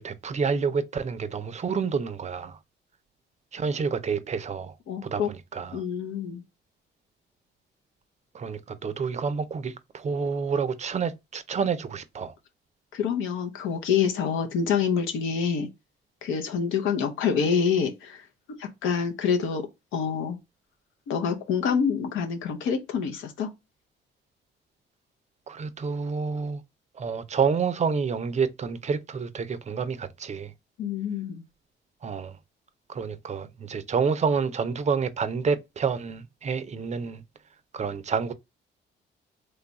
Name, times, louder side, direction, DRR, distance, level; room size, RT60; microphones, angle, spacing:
voice 1, 0.0-2.6 3.5-4.7 5.0-5.8 8.3-12.3 25.5-26.6 27.0-30.5 32.0-32.4 32.9-37.2 37.7-38.3, right 5 dB, 35° right, 0.5 m, -28 dB
voice 2, 4.9-5.3 5.7-6.4 12.9-15.7 16.2-18.2 18.6-20.4 21.1-23.5 30.8-31.4, left 6 dB, 90° left, 0.8 m, -27 dB
3.2 x 2.3 x 3.9 m
cardioid pair, 90°, 20 cm